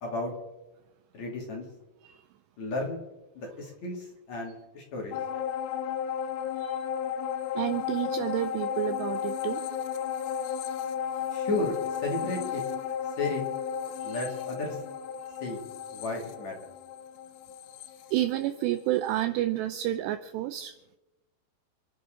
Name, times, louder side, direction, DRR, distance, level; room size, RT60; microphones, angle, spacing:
voice 1, 0.0-0.3 1.1-1.6 2.6-3.0 3.3-5.2 11.3-12.6 13.2-13.4 14.0-14.8 15.4-15.6 15.9-16.5, left 2 dB, 45° left, -1 dB, 3.2 m, -33 dB
sound 1, 5.1-18.8 19.2-19.3, left 8 dB, 85° left, 3.3 m, -34 dB
voice 2, 7.6-9.6 14.1-14.2 18.1-20.7, right 14 dB, 85° right, 10 dB, 2.5 m, -30 dB
29.0 x 11.5 x 3.9 m, 1.0 s
omnidirectional pair, 5.6 m